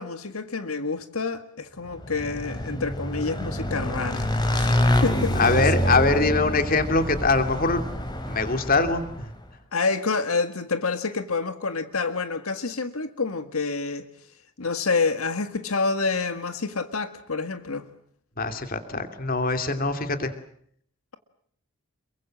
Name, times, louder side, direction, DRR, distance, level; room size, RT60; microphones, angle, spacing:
voice 1, 0.0-4.3 4.6-4.8 5.0-5.5 9.7-14.0 14.6-17.9, left 4 dB, 85° left, 1.7 m, -28 dB
Motorcycle / Engine, 2.0-9.3, left 1 dB, 20° left, 3.8 m, -26 dB
voice 2, 5.4-7.8 8.3-9.3 18.4-20.3, left 3 dB, 40° left, 2.7 m, -23 dB
28.0 x 23.0 x 7.6 m
head